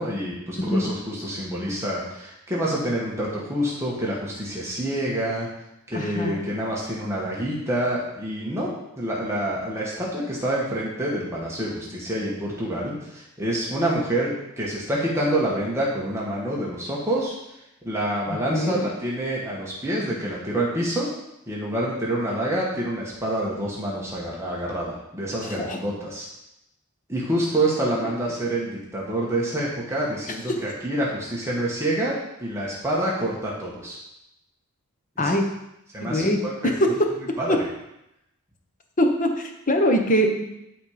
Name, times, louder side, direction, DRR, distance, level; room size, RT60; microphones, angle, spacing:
voice 1, 0.0-5.5 5.9-8.7 9.0-17.3 17.8-21.1 21.5-26.3 27.1-34.0 35.2-35.3 35.9-36.9 37.4-37.6, right 1 dB, 10° right, -5 dB, 1.6 m, -27 dB
voice 2, 0.6-0.9 5.9-6.4 18.3-18.7 25.6-25.8 35.2-35.4 36.0-36.4 36.6-36.9 37.5-37.6 39.0-40.4, equal, 35° left, 4 dB, 1.0 m, -22 dB
12.0 x 4.3 x 5.1 m, 0.86 s
head